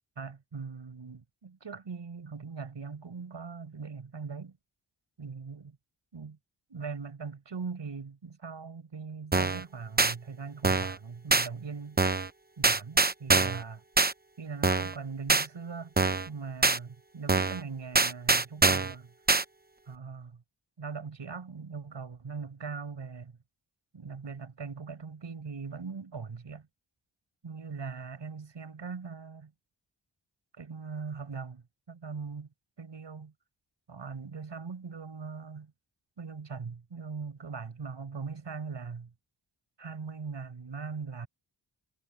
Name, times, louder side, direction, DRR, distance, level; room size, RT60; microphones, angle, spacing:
voice 1, 0.2-4.6 5.2-5.8 6.1-6.4 6.7-12.0 12.6-13.8 14.4-15.9 16.3-19.1 19.9-20.4 20.8-23.3 23.9-26.7 27.4-29.5 30.6-32.5 32.8-33.3 33.9-35.7 36.2-39.1 39.8-41.3, right 5 dB, 75° right, 5.6 m, -40 dB
sound 1, 9.3-9.6 10.0-10.1 10.6-11.0 11.3-11.5 12.0-12.3 12.6-13.6 14.0-14.1 14.6-15.0 15.3-15.5 16.0-16.3 16.6-16.8 17.3-17.6 17.9-18.9 19.3-19.4, right 3 dB, 20° right, 0.9 m, -24 dB
wide cardioid pair, 85°, 44 cm